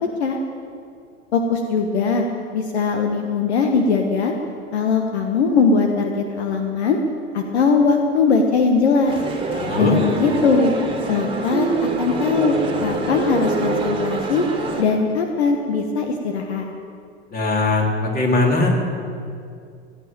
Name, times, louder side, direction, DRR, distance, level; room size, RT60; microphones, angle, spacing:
voice 1, 1.3-2.3 2.5-4.3 4.7-7.0 7.3-9.2 9.8-10.7 11.1-11.7 12.0-12.6 12.8-14.4 14.8-16.7, left 4 dB, 65° left, 4 dB, 1.4 m, -20 dB
Male speech man speaking, 9.0-14.8, right 3 dB, 15° right, 2.3 m, -25 dB
voice 2, 9.5-9.9 17.3-18.7, left 2 dB, 25° left, 0 dB, 3.4 m, -20 dB
17.0 x 8.8 x 9.0 m, 2.3 s
figure-of-eight pair, 80°, 35 cm